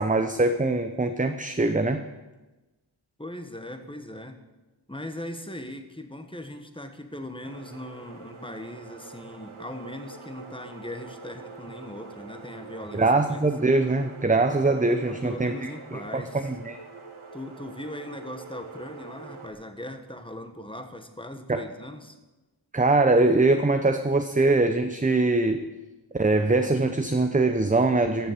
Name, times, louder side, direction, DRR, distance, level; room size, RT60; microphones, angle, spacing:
voice 1, 0.0-2.1 12.9-16.8 21.5-21.6 22.7-25.7 26.1-28.3, right 2 dB, 15° right, 7 dB, 0.6 m, -23 dB
voice 2, 3.2-4.4 4.9-13.5 15.1-16.4 17.3-22.2, left 1 dB, 10° left, 7 dB, 1.3 m, -39 dB
sound 1, 7.4-19.5, right 4 dB, 85° right, 1.6 m, -45 dB
14.0 x 7.1 x 8.2 m, 1.1 s
wide cardioid pair, 60°, 48 cm